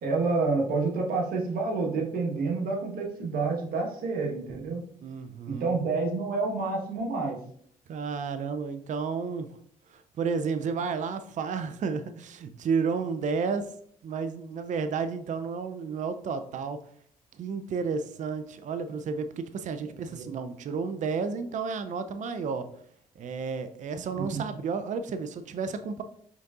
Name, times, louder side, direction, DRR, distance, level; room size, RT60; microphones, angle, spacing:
voice 1, 0.0-4.8 5.5-7.4 19.9-20.3 24.2-24.4, right 3 dB, 65° right, 0 dB, 1.2 m, -29 dB
voice 2, 5.0-5.7 7.9-9.6 9.9-13.7 14.0-16.8 17.4-22.7 23.2-26.0, right 5 dB, 50° right, 10 dB, 0.5 m, -32 dB
5.1 x 3.9 x 2.4 m, 0.64 s
hypercardioid pair, 55°, 16 cm